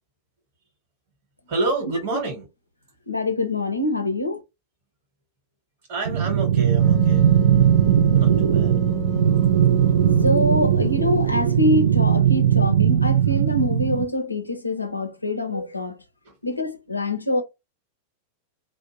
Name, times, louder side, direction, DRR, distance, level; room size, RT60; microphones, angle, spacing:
voice 1, 1.5-2.5 5.9-7.3 8.1-8.7, right 2 dB, 45° right, 1.1 m, -28 dB
voice 2, 3.1-4.4 10.2-16.0 16.4-17.4, left 1 dB, 85° left, 0.5 m, -24 dB
sound 1, 6.0-14.0, right 9 dB, 65° right, 0.3 m, -19 dB
Wind instrument woodwind instrument, 6.8-11.2, right 4 dB, 5° left, 0.7 m, -30 dB
2.5 x 2.0 x 2.7 m
figure-of-eight pair, 90°, 0 cm